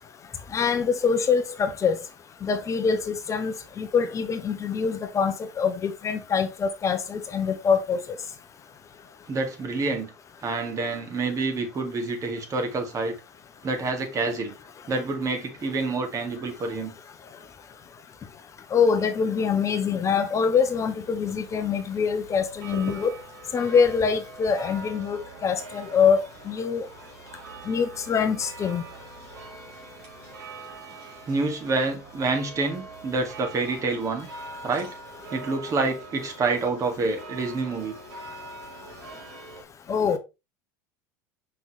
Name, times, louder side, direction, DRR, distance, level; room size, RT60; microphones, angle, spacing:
voice 1, 0.5-2.0 2.4-8.0 18.7-23.1 23.5-26.2 26.5-26.9 27.7-28.8 39.9-40.2, left 6 dB, 30° left, 0.9 m, -24 dB
voice 2, 9.3-10.1 10.4-13.1 13.6-14.5 14.9-16.9 31.3-34.3 34.6-34.9 35.3-38.0, right 3 dB, 35° right, 2.1 m, -27 dB
sound 1, 20.5-39.6, right 3 dB, 70° right, 3.8 m, -43 dB
5.8 x 5.4 x 3.2 m
hypercardioid pair, 80°, 10 cm